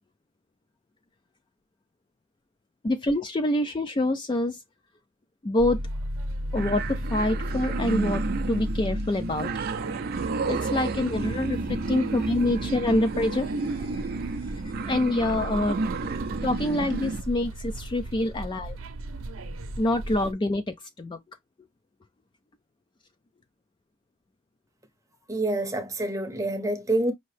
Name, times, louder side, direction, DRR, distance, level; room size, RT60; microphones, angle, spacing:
voice 1, 2.8-4.6 5.4-5.8 6.5-9.5 10.5-13.9 14.8-15.8 16.4-18.8 19.8-21.2, left 1 dB, 20° left, 0.3 m, -26 dB
sound 1, 5.6-20.3, right 1 dB, 75° right, 0.7 m, -35 dB
sound 2, 6.5-17.2, right 4 dB, 45° right, 0.4 m, -31 dB
voice 2, 25.3-27.1, right 2 dB, 15° right, 0.7 m, -27 dB
5.3 x 2.8 x 3.1 m
head